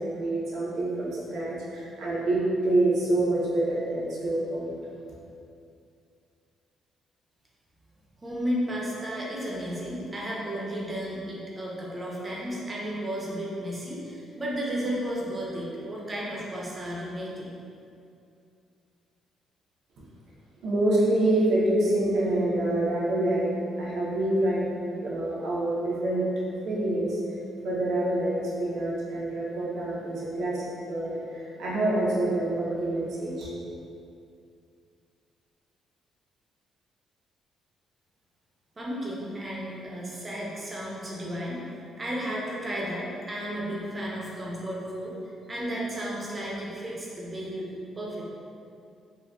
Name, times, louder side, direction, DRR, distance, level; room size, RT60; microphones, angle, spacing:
voice 1, 0.0-4.7 20.6-23.5 23.8-24.7 25.0-26.2 26.6-27.2 27.6-30.6 30.9-33.5, right 1 dB, 75° right, -6 dB, 0.6 m, -26 dB
voice 2, 8.2-17.6 38.8-41.6 42.0-45.1 45.5-47.7 48.0-48.2, equal, 25° right, -5 dB, 0.7 m, -33 dB
3.6 x 2.2 x 2.3 m, 2.5 s
cardioid pair, 90°, 0 cm